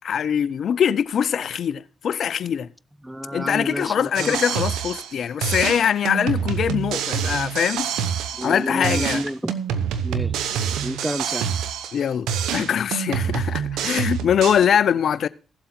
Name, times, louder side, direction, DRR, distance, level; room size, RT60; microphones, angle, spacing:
voice 1, 0.0-2.7 3.3-7.9 8.4-9.2 11.9-15.3, left 8 dB, 65° left, 0.5 m, -22 dB
voice 2, 3.0-4.4 8.4-9.6 10.0-11.4, equal, 10° right, 0.5 m, -30 dB
sound 1, 4.1-5.2 5.4-8.6 8.8-12.0 12.3-14.7, right 8 dB, 85° right, 0.8 m, -26 dB
16.0 x 7.7 x 4.3 m
supercardioid pair, 55°, 0 cm